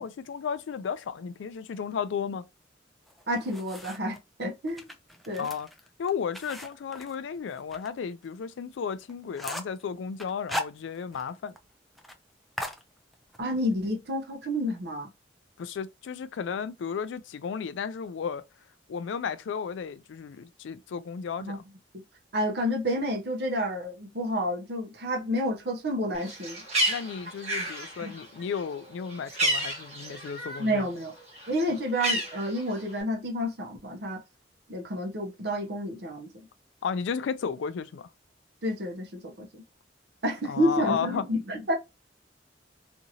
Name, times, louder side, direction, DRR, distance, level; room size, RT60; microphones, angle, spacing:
voice 1, 0.0-2.4 5.4-5.7 6.0-11.5 15.6-18.4 18.9-21.6 26.9-30.9 36.8-38.1 40.5-41.2, left 6 dB, 85° left, 0.3 m, -33 dB
sound 1, 3.1-4.2 4.7-7.9 8.2-8.3 8.7-8.8 9.1-9.8 10.2-11.3 11.6-11.7 12.0-12.2 12.6-13.4, left 1 dB, ahead, 0.3 m, -38 dB
voice 2, 3.3-4.9 5.3-5.5 13.4-15.1 21.4-21.6 22.3-26.6 28.0-28.1 30.6-31.1 31.5-34.2 34.7-36.3 38.6-39.6 40.2-41.8, equal, 60° right, 0.8 m, -29 dB
Bird, 26.1-30.8 31.1-33.0, right 1 dB, 35° right, 1.0 m, -31 dB
2.8 x 2.6 x 2.7 m
head